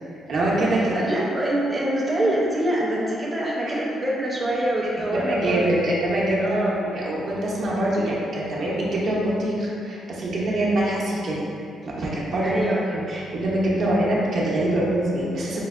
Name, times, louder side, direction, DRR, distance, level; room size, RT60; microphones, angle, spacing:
voice 1, 0.3-1.0 3.7-3.8 5.1-11.5 11.8-15.6, right 1 dB, 65° right, -5 dB, 0.7 m, -24 dB
voice 2, 0.9-5.8 6.4-6.8 12.4-12.9, right 1 dB, 20° right, -5 dB, 0.6 m, -25 dB
5.3 x 2.0 x 2.3 m, 2.5 s
cardioid pair, 90°, 0 cm